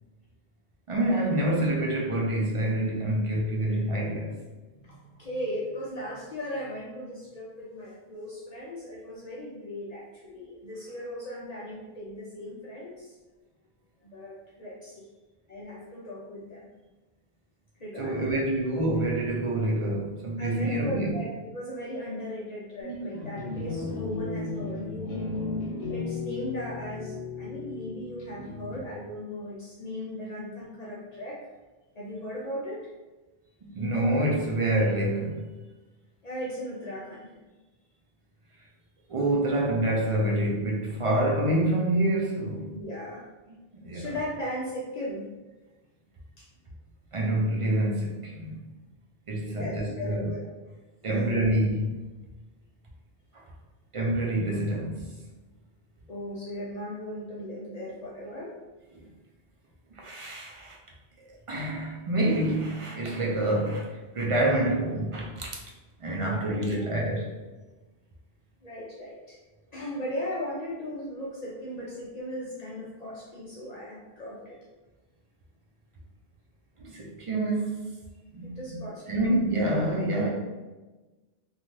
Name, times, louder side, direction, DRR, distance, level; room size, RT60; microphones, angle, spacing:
voice 1, 0.9-4.3 18.0-21.2 33.6-35.4 39.1-42.7 43.8-44.1 47.1-48.6 49.3-50.3 51.0-52.0 53.3-53.4 53.9-55.1 59.9-60.8 61.5-65.5 66.0-67.3 76.8-77.8 78.3-80.3, right 1 dB, 50° right, 0.4 m, -27 dB
voice 2, 4.8-13.2 14.0-15.1 15.5-16.7 17.8-18.4 20.4-25.3 25.8-31.4 31.9-32.9 36.2-37.3 42.7-43.2 43.9-45.3 46.4-46.5 49.4-50.5 51.0-51.6 56.1-58.6 66.2-66.8 68.6-69.4 69.7-74.6 78.4-79.3, left 1 dB, 50° left, 0.6 m, -37 dB
sound 1, 22.8-29.1, left 3 dB, 75° left, 0.9 m, -35 dB
3.1 x 2.4 x 2.6 m
omnidirectional pair, 1.1 m